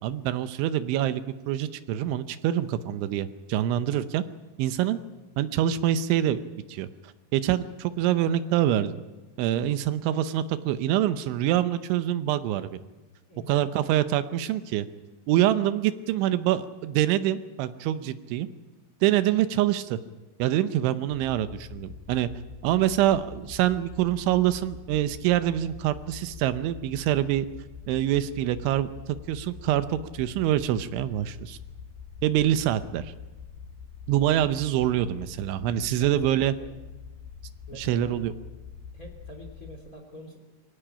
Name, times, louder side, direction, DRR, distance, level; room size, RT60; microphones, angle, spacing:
voice 1, 0.0-4.2 4.6-5.0 5.4-6.4 6.7-6.9 7.3-9.0 9.4-12.8 13.5-14.9 15.3-18.5 19.0-20.0 20.4-22.3 22.6-27.5 27.9-31.6 32.2-33.1 34.1-36.5 37.7-38.3, right 12 dB, 80° right, 11 dB, 3.2 m, -25 dB
voice 2, 13.3-14.0 36.0-36.7 37.7-38.2 38.9-40.4, equal, 25° left, 3 dB, 2.5 m, -46 dB
sound 1, 21.1-39.8, left 6 dB, 65° left, 3.0 m, -44 dB
24.5 x 16.5 x 8.9 m, 1.2 s
omnidirectional pair, 5.5 m